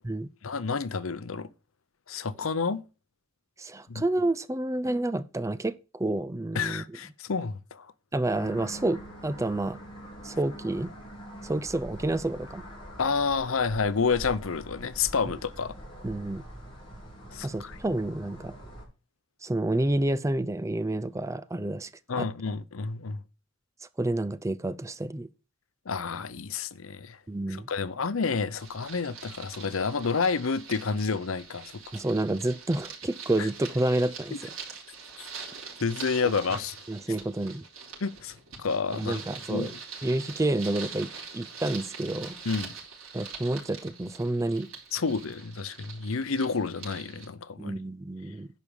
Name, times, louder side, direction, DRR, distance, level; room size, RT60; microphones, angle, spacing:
voice 1, 0.4-1.5 2.1-2.8 3.9-4.0 6.5-7.9 13.0-15.7 17.3-17.8 22.1-23.2 25.9-27.2 27.5-31.8 33.4-33.5 34.3-34.4 35.8-36.8 38.0-38.3 38.6-39.2 39.5-39.7 42.4-42.7 44.9-47.8, left 5 dB, 75° left, 0.7 m, -29 dB
voice 2, 3.6-6.8 8.1-9.8 10.2-10.9 11.4-12.6 15.2-15.3 16.0-16.4 17.4-18.5 19.4-21.9 22.2-22.3 24.0-25.3 27.3-27.7 31.9-34.5 36.2-36.3 36.9-37.6 38.9-39.7 40.0-42.3 43.1-44.7 47.6-48.5, right 1 dB, 15° right, 0.4 m, -29 dB
sound 1, 8.3-18.9, equal, 25° left, 4.0 m, -44 dB
sound 2, 28.5-47.3, right 5 dB, 80° right, 4.5 m, -44 dB
11.0 x 5.1 x 7.1 m
head